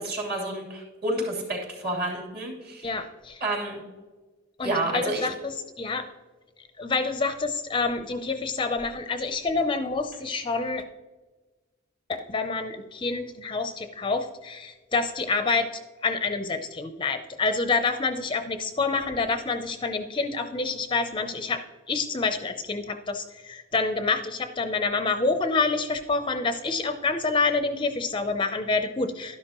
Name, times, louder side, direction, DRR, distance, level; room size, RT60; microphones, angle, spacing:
voice 1, 0.0-2.9 3.4-3.8 4.6-5.3, right 1 dB, 50° right, -1 dB, 3.1 m, -30 dB
voice 2, 2.8-3.4 4.6-6.1 6.8-10.8 12.1-29.4, left 3 dB, 25° left, 8 dB, 0.5 m, -27 dB
12.5 x 11.0 x 3.0 m, 1.3 s
head